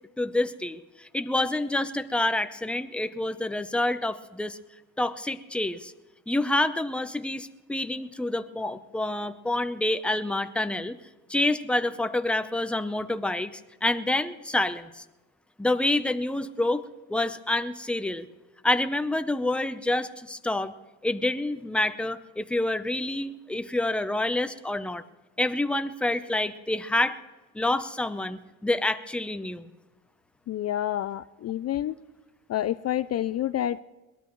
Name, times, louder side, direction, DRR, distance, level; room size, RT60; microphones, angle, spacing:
voice 1, 0.2-4.6 5.0-5.9 6.3-11.0 11.3-15.0 15.6-16.8 17.1-18.3 18.6-20.7 21.0-25.0 25.4-27.2 27.5-29.7, left 1 dB, 5° left, 10 dB, 0.7 m, -27 dB
voice 2, 30.5-31.9 32.5-33.8, left 12 dB, 50° left, 14 dB, 0.4 m, -28 dB
22.5 x 18.5 x 3.1 m, 1.2 s
cardioid pair, 100°, 34 cm